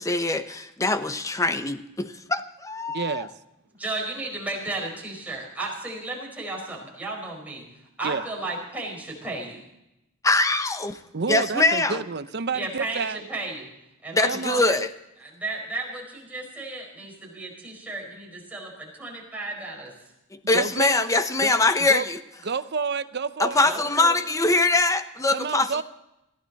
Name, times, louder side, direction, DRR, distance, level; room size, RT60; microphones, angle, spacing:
voice 1, 0.0-3.2 10.2-11.0 11.3-12.0 14.1-14.9 20.3-22.2 23.4-25.8, left 2 dB, 15° left, 9 dB, 0.9 m, -23 dB
voice 2, 2.9-3.3 8.0-8.2 11.1-13.2 14.3-14.9 20.5-21.0 21.4-21.6 21.9-22.0 22.4-23.7 25.3-25.8, right 5 dB, 55° right, 13 dB, 0.7 m, -29 dB
voice 3, 3.8-7.6 8.0-9.6 12.5-13.7 14.0-14.8 15.2-19.9 23.6-24.2, right 2 dB, 5° right, -2 dB, 4.9 m, -34 dB
20.5 x 15.0 x 4.1 m, 0.89 s
head